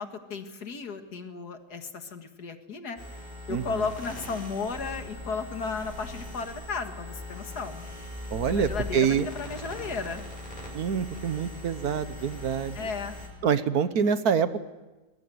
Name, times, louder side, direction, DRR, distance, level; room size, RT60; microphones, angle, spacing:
voice 1, 0.0-3.0 3.5-7.8 8.5-10.3 12.7-13.1, left 5 dB, 65° left, 7 dB, 2.3 m, -34 dB
sound 1, 3.0-13.3, left 1 dB, 25° left, 5.7 m, -40 dB
voice 2, 8.3-9.3 10.7-12.9 13.4-14.6, right 7 dB, 65° right, 12 dB, 1.4 m, -26 dB
23.0 x 21.5 x 7.9 m, 1.2 s
omnidirectional pair, 1.8 m